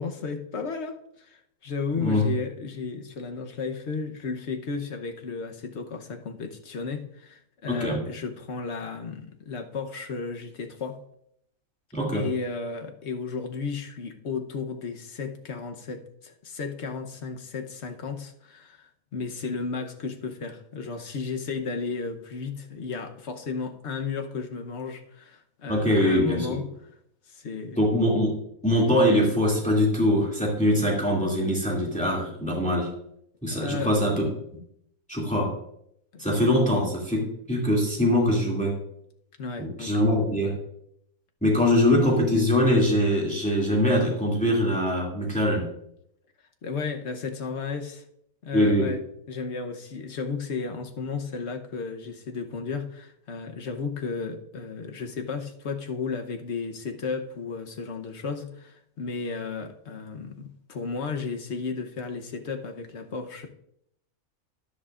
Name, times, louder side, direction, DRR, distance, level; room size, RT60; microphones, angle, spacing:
voice 1, 0.0-11.0 12.1-26.6 27.3-27.8 33.5-33.9 36.1-36.3 39.4-39.9 46.6-48.0 48.4-49.0 49.3-63.5, left 4 dB, 50° left, 5 dB, 1.2 m, -34 dB
voice 2, 2.0-2.3 7.7-8.0 11.9-12.3 25.7-26.6 27.8-28.4 28.6-32.9 33.4-34.3 35.1-35.5 36.2-38.7 39.6-40.6 41.4-45.7 48.5-48.9, left 1 dB, 5° left, -3 dB, 2.4 m, -23 dB
12.5 x 10.5 x 2.5 m, 0.73 s
omnidirectional pair, 1.6 m